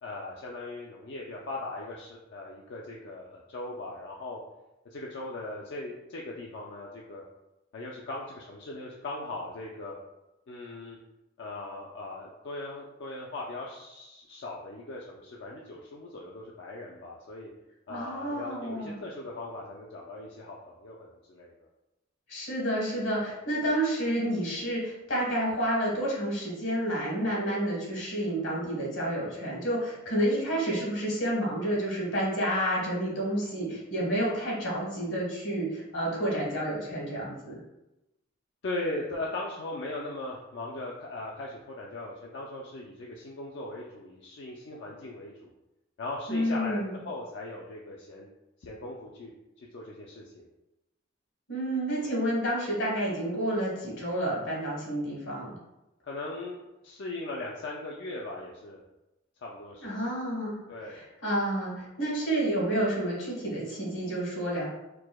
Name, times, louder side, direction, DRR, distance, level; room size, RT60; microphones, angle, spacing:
voice 1, 0.0-4.4 4.9-7.2 7.7-10.0 10.5-11.0 11.4-17.5 17.9-21.7 38.6-45.5 46.0-48.3 48.6-49.3 49.6-50.5 56.0-58.8 59.4-60.0 60.7-61.0, left 2 dB, 60° left, -3 dB, 0.4 m, -39 dB
voice 2, 17.9-18.9 22.3-37.6 46.3-46.9 51.5-55.5 59.8-60.6 60.9-64.7, right 1 dB, 85° left, -4 dB, 1.3 m, -30 dB
4.6 x 2.0 x 2.2 m, 0.94 s
head